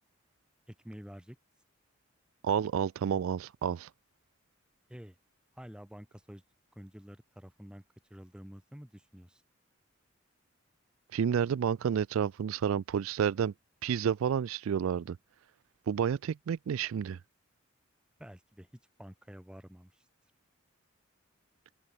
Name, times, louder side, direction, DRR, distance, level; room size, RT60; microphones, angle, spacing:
voice 1, 0.7-1.4 4.9-5.2 5.5-6.4 6.7-7.8 8.1-9.4 18.2-18.7 19.0-20.1, equal, 5° right, 0.9 m, -49 dB
voice 2, 2.4-3.9 11.1-13.5 13.8-15.2 15.9-17.2, right 8 dB, 85° right, 0.3 m, -30 dB
head